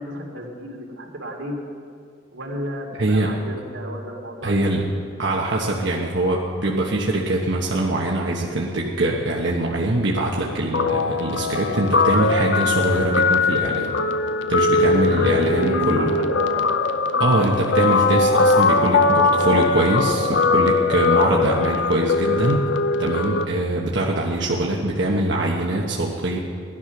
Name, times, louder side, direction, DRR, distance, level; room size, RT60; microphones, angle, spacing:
voice 1, 0.0-1.6 2.3-4.7 4.9-5.0 14.9-16.6, equal, 90° right, -1 dB, 2.8 m, -31 dB
voice 2, 3.0-3.3 4.4-4.8 5.2-13.9 14.5-16.1 17.2-22.6 23.0-26.4, right 1 dB, 60° right, -3 dB, 1.3 m, -23 dB
Guitar, 10.7-23.4, left 3 dB, 65° left, 0.6 m, -20 dB
18.0 x 11.5 x 6.0 m, 2.2 s
head